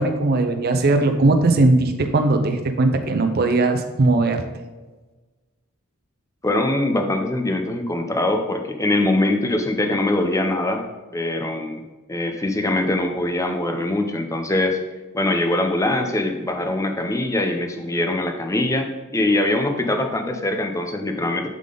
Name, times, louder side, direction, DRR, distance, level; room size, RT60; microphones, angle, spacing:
voice 1, 0.0-4.4, right 2 dB, 45° right, 6 dB, 0.6 m, -19 dB
voice 2, 6.4-10.8 11.1-11.8 12.1-14.8 15.1-21.5, left 2 dB, 15° left, 5 dB, 0.6 m, -22 dB
11.0 x 3.8 x 3.8 m, 1.2 s
head